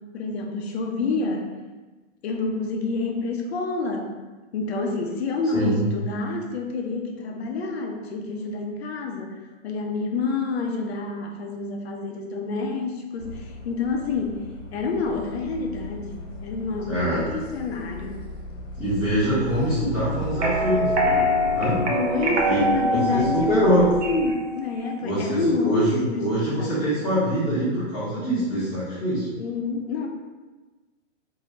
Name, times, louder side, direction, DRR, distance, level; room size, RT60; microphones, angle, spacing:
voice 1, 0.0-1.5 2.2-4.1 4.5-14.4 14.7-18.3 21.9-26.8 29.4-30.1, left 3 dB, 55° left, 2 dB, 0.6 m, -28 dB
voice 2, 5.5-5.8 16.8-17.3 18.8-21.8 22.4-22.6 23.1-23.8 25.0-29.3, right 1 dB, 5° left, -15 dB, 0.4 m, -24 dB
sound 1, 13.2-24.3, equal, 85° left, 0.8 m, -37 dB
sound 2, 20.3-24.4, equal, 60° right, 0.7 m, -24 dB
2.7 x 2.5 x 3.0 m, 1.3 s
hypercardioid pair, 160°, 38 cm